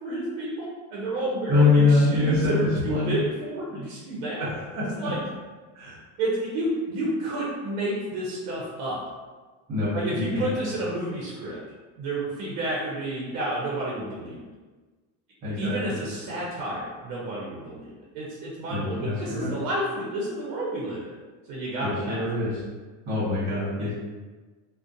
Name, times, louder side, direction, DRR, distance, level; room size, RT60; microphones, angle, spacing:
voice 1, 0.0-4.5 5.0-5.2 6.2-9.0 9.9-11.6 12.0-14.4 15.6-21.2 21.5-22.6, right 1 dB, 75° right, -4 dB, 0.7 m, -30 dB
voice 2, 1.5-3.2 4.7-5.1 5.7-6.0 9.7-10.5 15.4-16.0 18.7-19.5 21.8-22.5 23.1-23.9, left 3 dB, 50° right, -9 dB, 1.2 m, -24 dB
2.4 x 2.1 x 2.6 m, 1.3 s
supercardioid pair, 135°, 40 cm